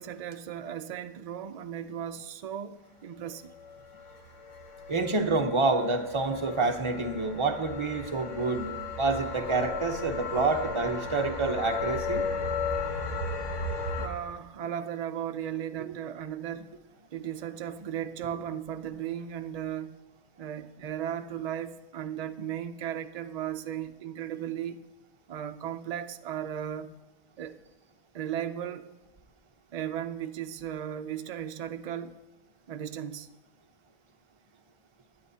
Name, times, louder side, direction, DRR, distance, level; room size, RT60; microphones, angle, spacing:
voice 1, 0.0-3.5 14.0-16.7 17.1-20.0 20.4-24.8 25.3-26.9 27.4-27.6 28.1-28.9 29.7-32.2 32.7-33.3, right 10 dB, 60° right, 0.4 m, -36 dB
sound 1, 3.5-14.1, left 4 dB, 80° left, 1.5 m, -35 dB
voice 2, 4.9-12.2, right 3 dB, 30° right, 0.8 m, -28 dB
21.5 x 8.8 x 2.8 m
omnidirectional pair, 1.3 m